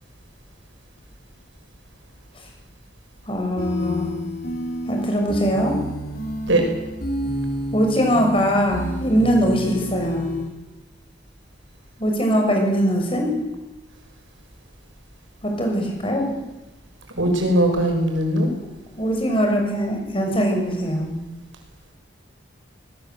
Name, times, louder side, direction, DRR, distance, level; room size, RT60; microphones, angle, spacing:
voice 1, 3.3-4.1 4.9-5.7 7.7-10.3 12.0-13.3 15.4-16.3 18.9-21.1, equal, 30° left, 2 dB, 6.4 m, -21 dB
sound 1, 3.6-10.4, equal, 50° left, 7.2 m, -30 dB
voice 2, 17.2-18.5, right 1 dB, 90° right, 3 dB, 6.8 m, -19 dB
23.0 x 20.0 x 8.0 m, 1.0 s
head